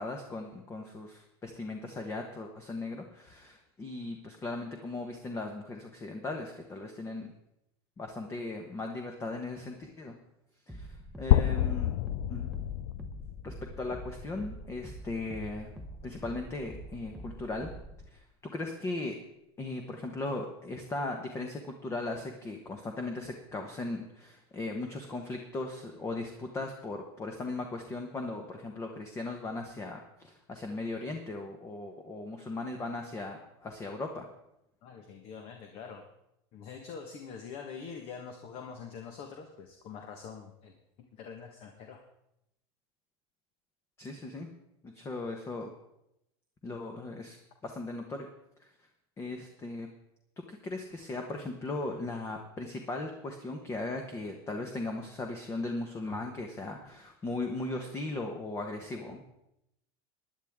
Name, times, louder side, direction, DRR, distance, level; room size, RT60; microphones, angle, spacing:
voice 1, 0.0-7.3 8.0-10.2 10.7-11.9 12.3-12.5 13.4-15.7 16.0-17.7 18.1-18.2 18.5-19.1 19.6-34.3 44.0-44.5 44.8-45.7 46.6-47.4 47.6-48.3 49.2-49.9 50.5-59.2, left 2 dB, 20° left, 4 dB, 1.2 m, -38 dB
sound 1, 10.7-18.1, right 1 dB, ahead, 1.0 m, -46 dB
sound 2, 11.3-15.2, left 13 dB, 65° left, 0.5 m, -29 dB
voice 2, 34.8-36.1 36.5-40.7 41.1-42.0, left 6 dB, 45° left, 4 dB, 1.4 m, -44 dB
16.5 x 10.5 x 3.7 m, 0.83 s
supercardioid pair, 140°, 13 cm